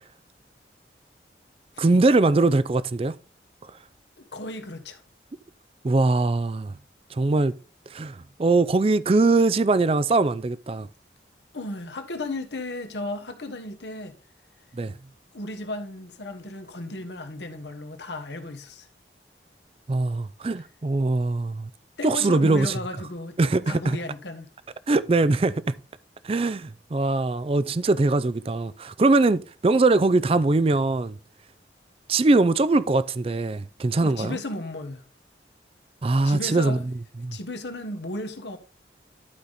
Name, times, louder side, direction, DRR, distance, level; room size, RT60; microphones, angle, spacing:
voice 1, 1.8-3.1 5.8-6.7 7.2-7.5 7.9-10.9 14.7-14.9 19.9-21.7 22.0-22.7 23.4-24.0 24.9-25.7 26.2-31.2 32.1-34.4 36.0-36.8 37.2-37.4, right 3 dB, 30° right, 0.4 m, -22 dB
voice 2, 4.2-5.0 11.5-14.1 15.3-18.9 22.0-23.4 23.7-24.5 34.0-35.0 36.2-36.8 37.3-38.6, left 2 dB, 85° left, 1.3 m, -34 dB
11.5 x 5.0 x 4.1 m
head